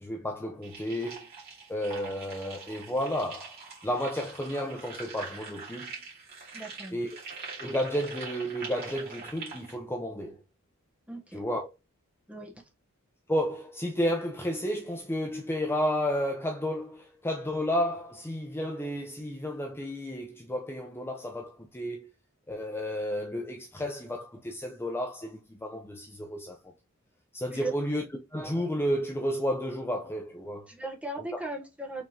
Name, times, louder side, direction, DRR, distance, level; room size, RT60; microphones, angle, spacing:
voice 1, 0.0-1.3 1.7-3.6 3.8-5.9 6.9-7.2 7.6-10.4 11.3-11.7 13.3-22.1 22.5-26.6 27.3-28.0 28.3-30.7, equal, 10° left, 0.5 m, -32 dB
sound 1, 0.6-9.7, right 4 dB, 50° right, 2.5 m, -43 dB
voice 2, 6.5-7.0 11.1-11.4 12.3-12.5 27.5-27.7 30.7-32.0, right 2 dB, 5° right, 0.9 m, -37 dB
5.1 x 3.6 x 2.8 m
head